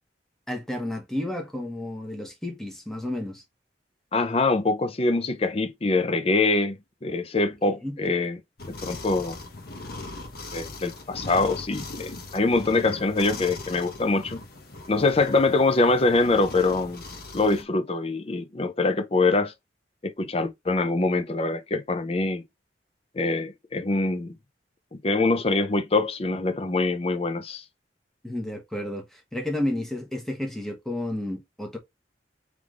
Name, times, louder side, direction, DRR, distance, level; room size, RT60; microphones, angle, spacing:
voice 1, 0.5-3.4 7.7-8.0 28.2-31.8, left 1 dB, 5° left, 1.2 m, -31 dB
voice 2, 4.1-8.4 8.7-9.4 10.5-14.4 14.9-17.0 17.3-19.5 20.0-22.4 23.1-24.3 24.9-27.6, left 3 dB, 35° left, 0.6 m, -24 dB
sound 1, 8.6-17.6, left 2 dB, 55° left, 1.0 m, -39 dB
3.5 x 3.2 x 3.7 m
head